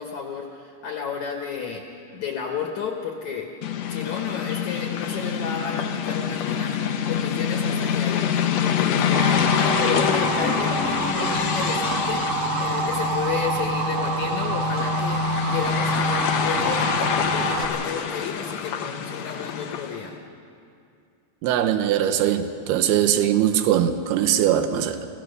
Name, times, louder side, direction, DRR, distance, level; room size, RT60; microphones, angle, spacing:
voice 1, 0.0-1.9 2.1-3.5 3.9-20.2, left 6 dB, 60° left, 2 dB, 2.1 m, -32 dB
sound 1, 3.6-20.1, left 7 dB, 90° left, 1.5 m, -26 dB
Motor vehicle (road) / Siren, 9.1-17.6, right 4 dB, 55° right, 2.4 m, -27 dB
voice 2, 21.4-25.1, right 10 dB, 85° right, 8 dB, 2.9 m, -21 dB
26.0 x 16.5 x 6.6 m, 2.4 s
omnidirectional pair, 4.5 m